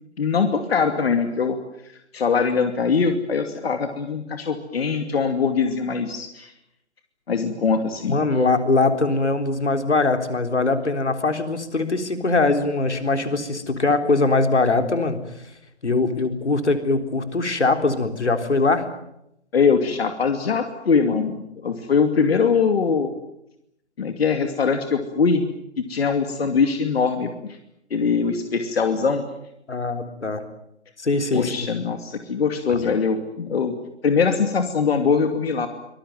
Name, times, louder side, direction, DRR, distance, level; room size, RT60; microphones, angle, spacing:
voice 1, 0.2-1.6 2.1-6.5 7.3-8.2 19.5-23.1 24.0-25.5 25.8-27.6 27.9-29.2 31.3-33.7 34.0-35.7, left 5 dB, 60° left, 7 dB, 2.6 m, -22 dB
voice 2, 8.0-15.2 15.8-18.8 29.7-30.4 31.0-31.7 32.7-32.8, left 3 dB, 80° left, 7 dB, 3.8 m, -22 dB
25.0 x 20.0 x 9.2 m, 0.81 s
figure-of-eight pair, 140°, 34 cm